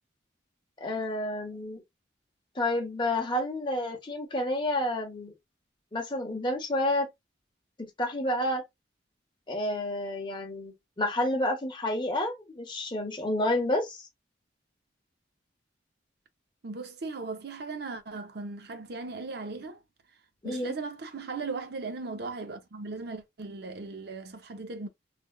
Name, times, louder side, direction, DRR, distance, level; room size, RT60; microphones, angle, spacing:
voice 1, 0.8-1.8 2.5-5.3 5.9-7.1 7.8-8.6 9.5-14.1 20.4-20.7, left 1 dB, 25° left, 0.9 m, -30 dB
voice 2, 16.6-19.8 20.4-24.9, right 3 dB, 60° right, 0.6 m, -38 dB
3.4 x 2.3 x 2.3 m
head